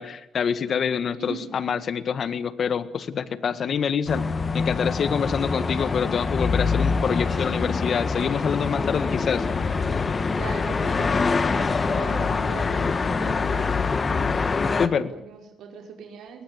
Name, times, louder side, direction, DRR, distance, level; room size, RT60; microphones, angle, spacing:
voice 1, 0.0-4.2 4.5-9.4 14.8-15.1, left 7 dB, 55° left, 13 dB, 1.8 m, -26 dB
voice 2, 1.1-1.6 9.6-13.8 14.6-16.4, right 6 dB, 75° right, 2 dB, 5.2 m, -40 dB
sound 1, 4.1-14.9, left 4 dB, 35° left, 1.7 m, -25 dB
22.0 x 19.0 x 9.8 m, 0.81 s
cardioid pair, 90°, 0 cm